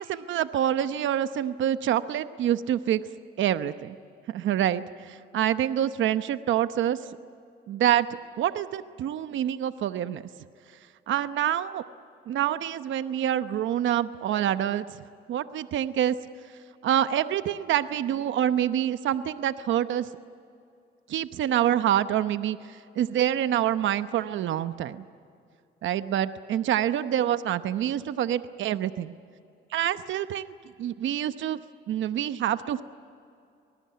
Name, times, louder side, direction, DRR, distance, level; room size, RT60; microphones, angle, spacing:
voice 1, 0.0-3.0 3.4-4.0 4.3-7.0 7.7-8.1 8.4-10.2 11.1-11.8 12.3-14.9 15.3-16.1 16.8-20.1 21.1-22.6 23.0-25.0 25.8-29.1 29.7-30.5 30.8-31.6 31.9-32.8, right 11 dB, 75° right, 12 dB, 0.9 m, -26 dB
25.0 x 19.5 x 9.5 m, 2.5 s
cardioid pair, 90°, 20 cm